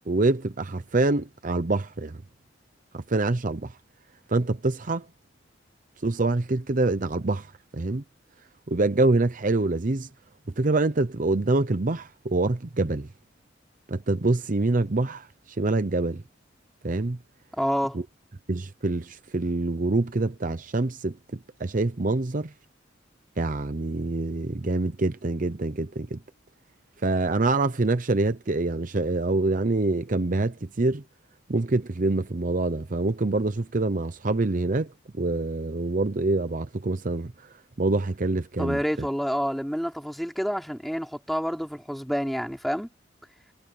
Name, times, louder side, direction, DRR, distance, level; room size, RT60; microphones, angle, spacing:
voice 1, 0.1-2.2 2.9-3.7 4.3-5.0 6.0-7.5 7.7-8.0 8.7-10.1 10.6-13.1 13.9-15.3 15.6-16.2 16.8-17.2 18.5-21.1 21.6-22.5 23.4-26.2 27.0-31.0 31.5-37.3 37.8-39.1, right 2 dB, 45° right, 0.8 m, -25 dB
voice 2, 17.5-18.0 38.6-42.9, equal, ahead, 3.1 m, -28 dB
head